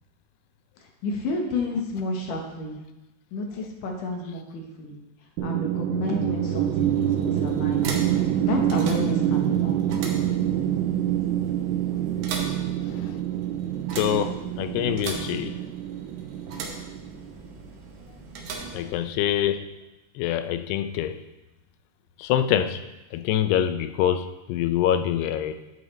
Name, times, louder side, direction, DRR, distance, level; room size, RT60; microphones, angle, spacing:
voice 1, 0.8-2.8 3.3-5.0 5.4-10.7, left 2 dB, 65° left, 1 dB, 2.4 m, -31 dB
sound 1, 5.4-17.5, right 11 dB, 85° right, 2.1 m, -26 dB
sound 2, 6.2-19.5, right 4 dB, 70° right, 2.3 m, -40 dB
voice 2, 13.9-15.6 18.7-19.6 20.2-21.2 22.2-22.8 23.1-25.6, left 10 dB, 85° left, 10 dB, 2.6 m, -25 dB
11.0 x 7.8 x 3.2 m, 0.99 s
omnidirectional pair, 4.7 m